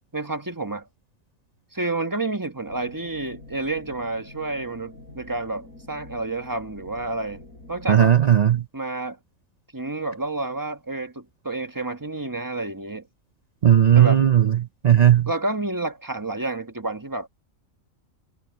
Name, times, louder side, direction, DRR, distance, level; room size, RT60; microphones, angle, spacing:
voice 1, 0.1-0.9 1.7-7.4 7.7-8.2 8.7-9.2 9.7-13.0 13.9-14.2 15.3-17.3, right 2 dB, 15° right, 1.3 m, -29 dB
sound 1, 2.7-8.3, left 2 dB, 85° left, 5.4 m, -46 dB
voice 2, 7.9-8.6 13.6-14.6 14.8-15.3, right 10 dB, 70° right, 0.3 m, -16 dB
omnidirectional pair, 1.4 m